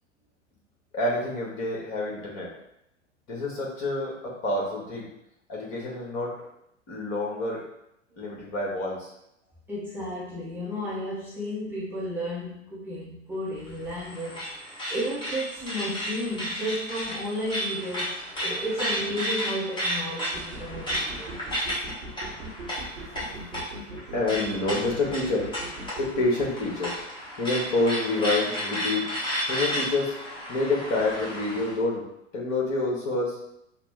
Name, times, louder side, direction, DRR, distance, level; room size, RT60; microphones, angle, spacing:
voice 1, 0.9-2.5 3.3-5.1 5.5-6.3 6.9-7.6 8.2-9.1 22.8-23.5 24.1-25.4 26.0-26.9 27.4-29.0 29.5-30.1 30.5-32.0 32.3-33.4, left 2 dB, 35° left, -3 dB, 1.5 m, -28 dB
voice 2, 9.7-21.3, equal, 5° right, -9 dB, 0.8 m, -33 dB
sound 1, 13.6-31.8, equal, 15° left, 1.2 m, -33 dB
sound 2, 20.3-26.3, right 2 dB, 75° right, 0.9 m, -40 dB
5.7 x 2.1 x 3.4 m, 0.78 s
figure-of-eight pair, 95°, 37 cm